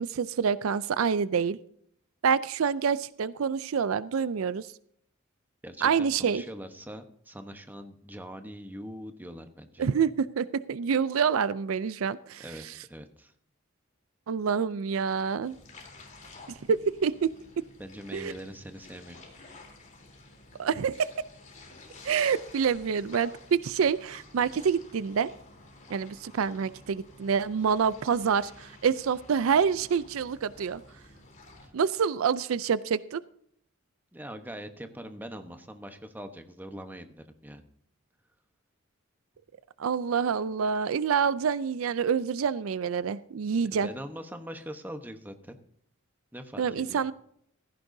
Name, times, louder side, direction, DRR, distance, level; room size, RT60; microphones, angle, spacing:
voice 1, 0.0-1.6 2.2-4.7 5.8-6.4 9.8-12.4 14.3-15.5 16.7-17.6 18.1-18.3 20.6-21.1 22.0-25.3 25.9-30.8 31.7-33.2 39.8-43.9 46.6-47.1, right 6 dB, 75° right, 17 dB, 0.4 m, -27 dB
voice 2, 5.6-9.9 12.4-13.3 17.8-19.2 31.6-31.7 34.1-37.6 43.6-45.6 46.3-47.0, equal, 10° right, 7 dB, 1.0 m, -42 dB
sound 1, 15.4-31.7, left 2 dB, 40° left, 3.4 m, -51 dB
16.0 x 14.5 x 2.7 m, 0.67 s
head